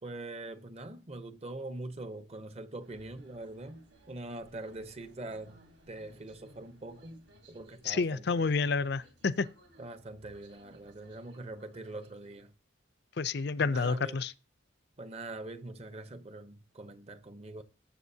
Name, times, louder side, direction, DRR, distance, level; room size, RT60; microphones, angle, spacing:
voice 1, 0.0-5.6 5.9-8.5 9.8-12.5 13.6-14.2 15.0-17.6, right 2 dB, 35° right, 0.8 m, -43 dB
sound 1, 2.8-12.4, right 1 dB, 80° right, 3.4 m, -60 dB
voice 2, 7.8-9.5 13.2-14.3, left 4 dB, 55° left, 0.5 m, -29 dB
19.5 x 7.8 x 2.8 m
head